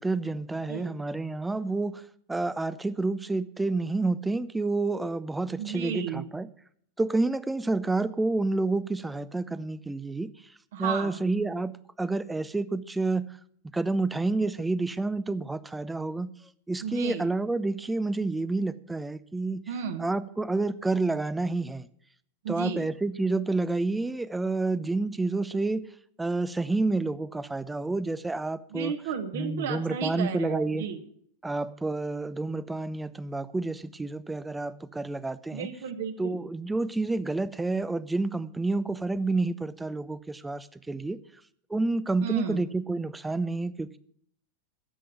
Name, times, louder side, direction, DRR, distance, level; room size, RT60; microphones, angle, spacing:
voice 1, 0.0-2.0 2.3-6.5 7.0-10.3 10.8-13.3 13.7-16.3 16.7-19.6 20.0-21.9 22.5-25.8 26.2-28.9 29.3-30.9 31.4-35.7 36.2-41.2 41.7-44.0, right 3 dB, 10° right, 17 dB, 0.5 m, -29 dB
voice 2, 5.6-6.2 10.7-11.2 16.8-17.3 19.7-20.1 22.4-22.9 28.7-31.0 35.5-36.4 42.2-42.6, right 7 dB, 55° right, 7 dB, 1.5 m, -33 dB
10.0 x 7.7 x 9.4 m, 0.64 s
figure-of-eight pair, 90°, 0 cm